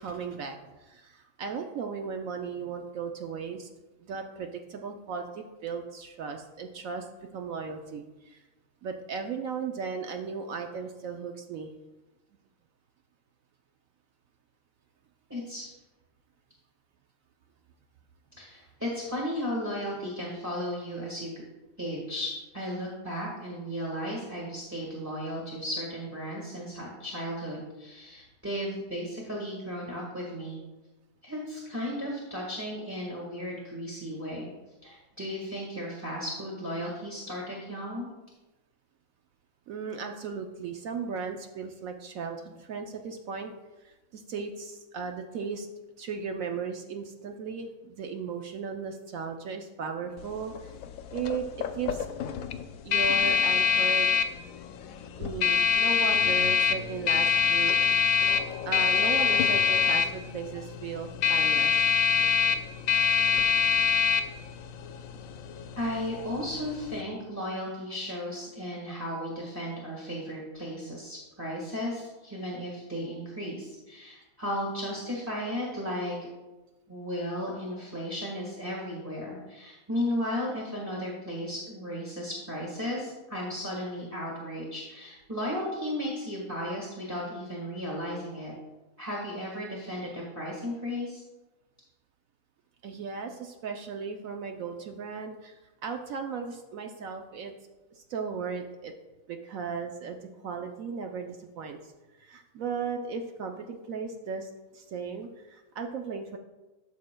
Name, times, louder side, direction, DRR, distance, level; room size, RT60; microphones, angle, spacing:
voice 1, 0.0-3.7 4.0-7.1 7.3-8.4 8.8-11.7 39.7-43.5 43.8-45.7 46.0-50.7 51.1-51.5 51.7-52.1 52.8-54.2 55.2-57.8 58.7-61.8 92.8-97.5 97.9-98.9 99.3-101.9 102.2-106.4, right 5 dB, 65° right, 4 dB, 1.0 m, -36 dB
voice 2, 15.3-15.7 18.4-21.3 21.8-30.6 31.2-34.5 34.8-38.1 65.8-76.2 76.9-88.5 89.0-91.2, equal, 10° right, -3 dB, 1.4 m, -35 dB
sound 1, 50.2-67.0, left 7 dB, 70° left, 0.9 m, -26 dB
13.0 x 6.2 x 2.2 m, 1.1 s
omnidirectional pair, 1.6 m